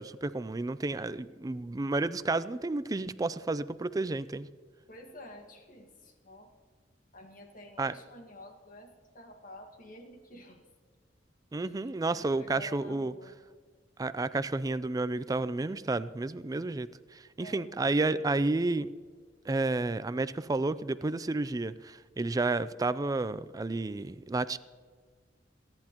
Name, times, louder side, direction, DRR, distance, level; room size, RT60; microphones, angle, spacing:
voice 1, 0.0-4.5 7.8-7.9 11.5-13.1 14.0-18.9 19.5-24.6, right 2 dB, 20° right, 15 dB, 0.4 m, -31 dB
voice 2, 4.9-6.5 7.1-10.6 11.5-11.8 12.1-13.4 17.4-18.4, left 1 dB, 50° left, 4 dB, 1.7 m, -50 dB
27.5 x 10.5 x 3.0 m, 1.5 s
head